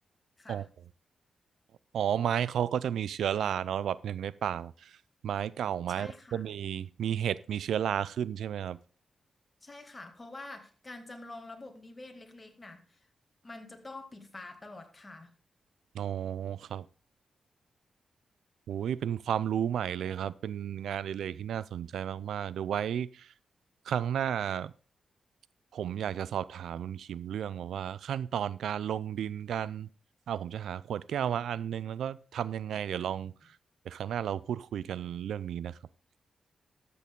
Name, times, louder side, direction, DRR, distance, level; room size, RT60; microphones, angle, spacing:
voice 1, 1.9-4.9 5.2-8.8 15.9-16.9 18.7-23.3 23.9-24.7 25.7-29.9 30.3-33.3 33.9-35.8, right 9 dB, 90° right, 0.4 m, -33 dB
voice 2, 5.9-6.4 9.6-13.1 13.4-15.3, left 2 dB, 25° left, 2.0 m, -47 dB
13.0 x 6.9 x 3.7 m
cardioid pair, 65°, 0 cm